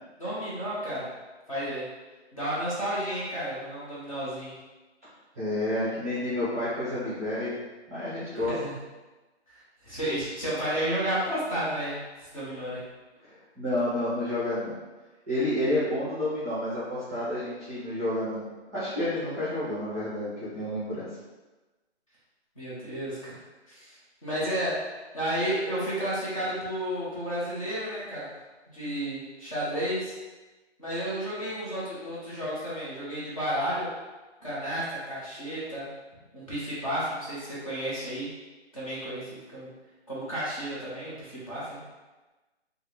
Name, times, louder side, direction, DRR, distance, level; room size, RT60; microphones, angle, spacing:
voice 1, 0.2-1.1 1.5-1.9 2.3-4.5 8.3-8.7 9.5-12.8 22.6-23.4 23.7-23.9 24.2-24.9 25.1-28.3 28.7-30.1 30.8-33.9 34.4-35.9 36.3-38.3 38.7-39.7 40.1-41.8, equal, 30° left, -9 dB, 1.1 m, -32 dB
voice 2, 5.4-7.6 7.9-8.5 13.2-14.8 15.3-18.4 18.7-21.1, left 1 dB, 15° right, -11 dB, 0.6 m, -30 dB
3.5 x 2.3 x 3.1 m, 1.2 s
hypercardioid pair, 165°, 35 cm